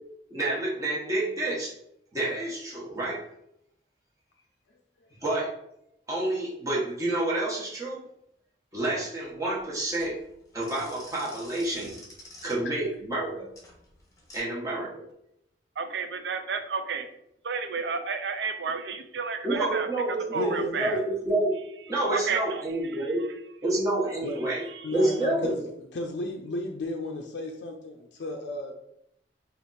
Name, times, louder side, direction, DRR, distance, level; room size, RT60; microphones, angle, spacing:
voice 1, 0.3-1.7 2.1-3.2 5.2-5.5 6.1-8.0 8.7-10.2 10.5-11.9 12.4-13.5 14.3-14.9 19.4-21.6 21.9-23.2 23.6-24.6 24.9-25.5, right 2 dB, 20° right, -6 dB, 1.0 m, -28 dB
sound 1, 9.2-14.4, left 1 dB, 20° left, 0.8 m, -49 dB
voice 2, 15.8-17.1 17.4-19.9 20.3-21.0 22.1-22.6 22.9-23.0 24.7-24.9, right 5 dB, 70° right, 8 dB, 0.4 m, -31 dB
voice 3, 20.3-21.0 24.2-24.4 24.8-28.7, left 1 dB, 75° left, 2 dB, 0.4 m, -34 dB
3.3 x 2.5 x 3.9 m, 0.77 s
head